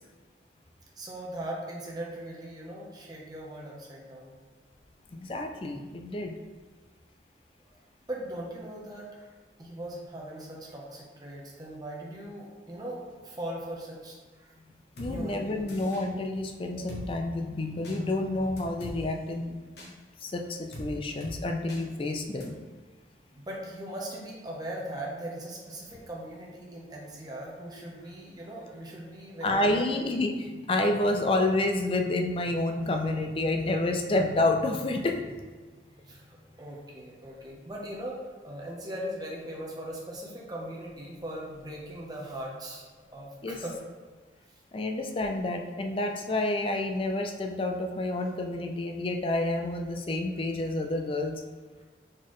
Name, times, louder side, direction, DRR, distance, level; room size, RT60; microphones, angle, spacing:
voice 1, 1.0-4.4 8.1-9.3 9.6-14.5 15.0-15.7 23.3-29.9 36.0-42.9 43.1-43.8 51.8-51.9, right 1 dB, 20° right, -3 dB, 0.8 m, -39 dB
voice 2, 5.1-6.4 15.0-19.5 20.2-22.5 29.4-35.3 43.4-43.6 44.7-51.4, left 2 dB, 30° left, 4 dB, 0.4 m, -29 dB
Drum kit, 15.0-15.1 15.7-16.0 16.9-17.0 17.8-18.0 18.6-19.0 19.8-19.9 20.7-20.9 21.2-21.4 21.7-21.8 22.4-22.5, equal, 70° left, 1.1 m, -41 dB
4.4 x 3.9 x 3.1 m, 1.4 s
head